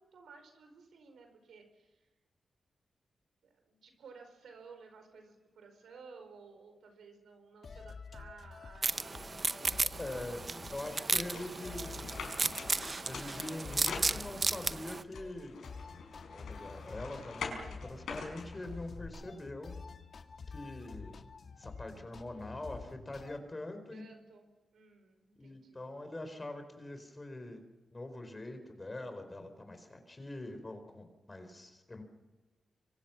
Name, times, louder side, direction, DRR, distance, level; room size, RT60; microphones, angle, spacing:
voice 1, 0.0-2.1 3.4-10.0 10.9-12.3 23.9-25.9, right 4 dB, 90° right, 6 dB, 4.8 m, -55 dB
sound 1, 7.6-23.4, left 4 dB, 55° left, 1.9 m, -49 dB
sound 2, 8.8-15.0, right 3 dB, 35° right, 0.7 m, -34 dB
voice 2, 10.0-10.4 10.7-12.2 13.1-15.6 16.3-17.6 17.9-19.8 20.5-21.1 21.6-24.0 25.4-27.6 27.9-32.0, left 1 dB, 25° left, 7 dB, 4.5 m, -43 dB
sound 3, 11.3-14.6 15.1-19.1, left 5 dB, 85° left, 5.3 m, -45 dB
25.5 x 24.0 x 6.1 m, 1.2 s
cardioid pair, 80°, 0 cm